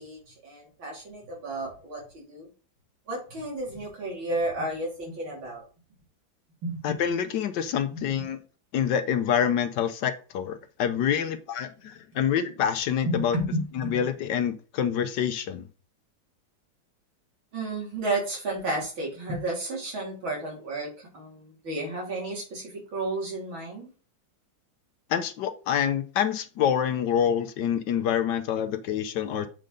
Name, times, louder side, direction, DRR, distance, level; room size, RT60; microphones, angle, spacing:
voice 1, 0.0-2.5 3.1-5.6 6.6-7.0 7.9-8.0 13.1-14.1 17.5-23.9, right 2 dB, 85° right, 3.7 m, -32 dB
voice 2, 6.8-8.4 8.7-13.3 13.8-15.7 25.1-29.5, left 8 dB, 70° left, 1.2 m, -26 dB
7.6 x 5.0 x 3.8 m
omnidirectional pair, 2.1 m